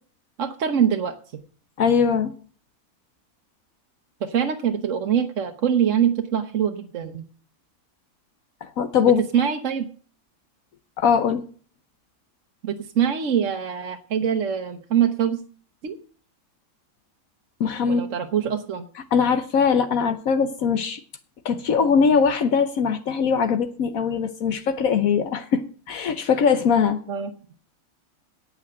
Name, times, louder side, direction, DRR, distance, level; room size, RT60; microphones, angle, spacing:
voice 1, 0.4-1.4 4.2-7.2 9.3-9.9 12.6-15.4 15.8-15.9 17.9-18.9 27.1-27.3, right 8 dB, 60° right, 1.2 m, -24 dB
voice 2, 1.8-2.3 8.6-9.2 11.0-11.4 17.6-18.0 19.1-21.0 21.4-27.0, left 6 dB, 70° left, 1.3 m, -21 dB
8.9 x 8.7 x 7.7 m
omnidirectional pair, 1.5 m